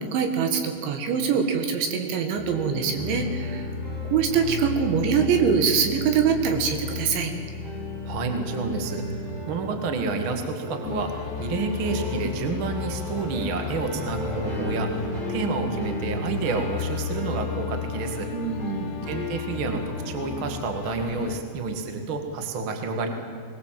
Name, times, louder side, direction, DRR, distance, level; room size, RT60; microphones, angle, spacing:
voice 1, 0.0-3.6 4.1-7.3 18.3-19.0, right 6 dB, 70° right, 6 dB, 3.9 m, -24 dB
sound 1, 2.4-20.7, left 3 dB, 45° right, 8.7 m, -33 dB
voice 2, 8.0-18.3 19.1-23.1, right 4 dB, 85° right, 5 dB, 1.1 m, -29 dB
sound 2, 10.8-21.4, left 9 dB, 75° left, 2.6 m, -37 dB
21.5 x 19.5 x 7.6 m, 2.3 s
omnidirectional pair, 5.9 m